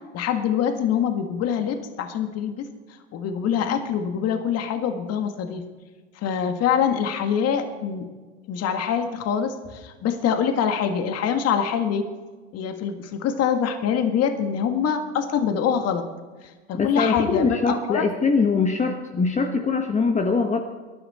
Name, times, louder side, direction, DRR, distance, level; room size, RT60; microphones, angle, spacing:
voice 1, 0.1-2.7 3.1-5.6 6.2-8.1 8.5-12.0 12.5-16.0 16.7-18.0, left 7 dB, 40° left, 6 dB, 1.9 m, -24 dB
voice 2, 16.7-20.6, left 4 dB, 20° left, 4 dB, 1.3 m, -22 dB
21.0 x 11.5 x 4.3 m, 1.4 s
hypercardioid pair, 95°, 36 cm